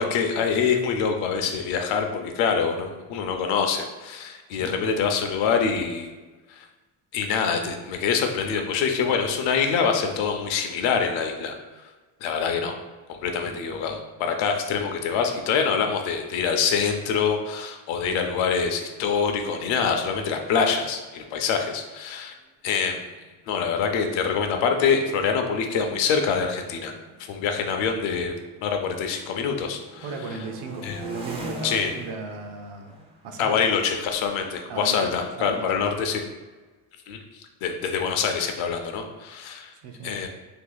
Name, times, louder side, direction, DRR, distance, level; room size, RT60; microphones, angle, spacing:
voice 1, 0.0-6.1 6.5-6.7 7.1-11.5 12.2-12.8 13.1-22.3 22.6-23.0 23.5-26.9 27.3-28.4 28.6-30.1 30.8-31.0 31.6-31.9 33.4-36.2 37.1-37.2 37.6-39.7 40.0-40.3, left 6 dB, 75° left, 5 dB, 0.7 m, -25 dB
voice 2, 4.5-4.9 13.4-14.0 30.0-32.9 33.2-33.6 34.7-35.7 39.8-40.2, right 4 dB, 60° right, 4 dB, 0.7 m, -36 dB
sound 1, 23.3-23.4 23.6-24.0 24.7-28.6 29.0-35.6, right 1 dB, 15° right, 0.3 m, -43 dB
2.8 x 2.5 x 3.9 m, 1.3 s
cardioid pair, 125°, 47 cm